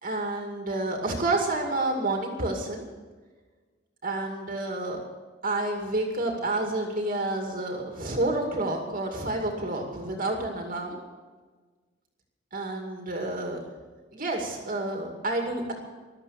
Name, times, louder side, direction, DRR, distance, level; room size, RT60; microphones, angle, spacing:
voice 1, 0.0-2.8 4.0-5.0 5.4-11.0 12.5-13.6 14.1-15.7, right 2 dB, 45° right, 1 dB, 2.3 m, -29 dB
15.0 x 12.5 x 6.7 m, 1.3 s
head